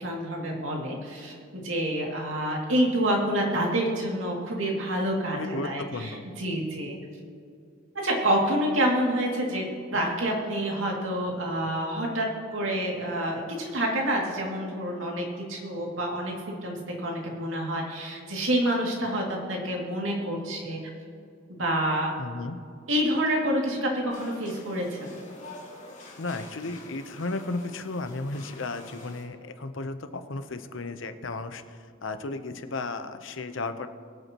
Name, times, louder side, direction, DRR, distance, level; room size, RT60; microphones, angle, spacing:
voice 1, 0.0-7.0 7.9-9.7 9.9-12.3 12.5-20.8 21.6-22.1 22.9-25.1, right 1 dB, 85° right, -1 dB, 2.4 m, -28 dB
voice 2, 5.3-6.3 22.2-22.6 26.2-33.9, left 3 dB, 80° left, 9 dB, 0.8 m, -34 dB
sound 1, 24.1-29.2, left 2 dB, 40° left, 2.4 m, -47 dB
23.0 x 8.2 x 3.0 m, 2.3 s
head